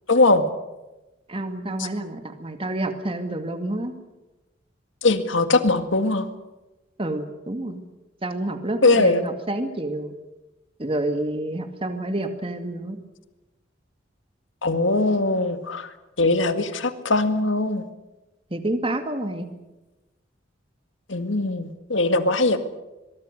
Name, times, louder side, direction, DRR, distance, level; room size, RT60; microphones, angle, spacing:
voice 1, 0.1-0.4 5.0-6.3 8.8-9.2 14.6-15.9 16.2-17.8 21.1-22.6, left 2 dB, 80° left, 8 dB, 2.0 m, -20 dB
voice 2, 1.3-3.9 7.0-7.8 8.2-10.1 10.8-13.0 18.5-19.4, right 1 dB, 30° right, 6 dB, 2.1 m, -28 dB
23.0 x 23.0 x 6.7 m, 1.0 s
head